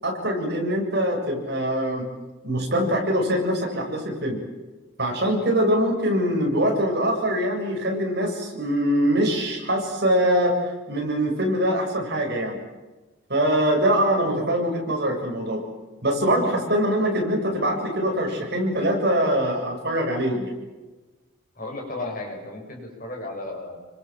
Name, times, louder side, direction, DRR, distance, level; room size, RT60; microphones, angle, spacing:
voice 1, 0.0-2.1 2.4-4.4 5.0-10.6 10.9-12.6 13.3-15.6 16.0-20.5, equal, 50° right, 1 dB, 7.0 m, -23 dB
voice 2, 21.6-23.8, left 2 dB, 40° left, 1 dB, 7.4 m, -34 dB
28.5 x 24.5 x 7.5 m, 1.2 s
head